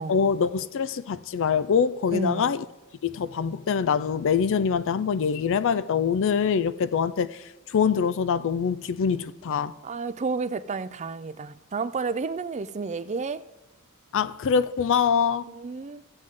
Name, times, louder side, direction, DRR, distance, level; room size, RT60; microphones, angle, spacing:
voice 1, 0.1-2.6 3.0-9.7 14.1-15.5, left 6 dB, 65° left, 0.4 m, -24 dB
voice 2, 2.1-2.5 9.8-13.4 15.5-16.0, right 4 dB, 30° right, 0.4 m, -31 dB
15.0 x 7.7 x 3.7 m
head